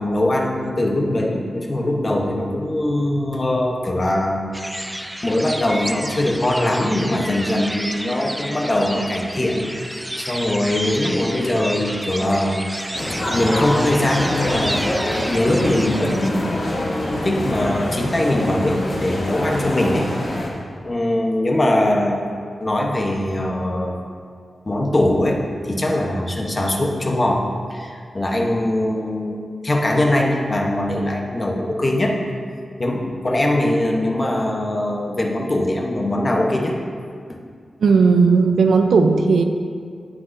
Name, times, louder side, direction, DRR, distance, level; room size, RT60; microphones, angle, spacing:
voice 1, 0.0-4.4 5.2-12.8 13.3-20.4 20.8-22.3 22.6-23.9 24.7-29.4 29.6-32.2 32.8-36.8 37.3-37.4, left 1 dB, 25° left, 0 dB, 0.9 m, -21 dB
sound 1, 4.5-16.3, equal, 5° right, 0.3 m, -31 dB
sound 2, 12.9-20.5, left 1 dB, 50° left, 2.0 m, -26 dB
voice 2, 37.8-39.4, right 4 dB, 85° right, 5 dB, 0.6 m, -15 dB
17.5 x 6.0 x 2.7 m, 2.2 s
wide cardioid pair, 170°, 0 cm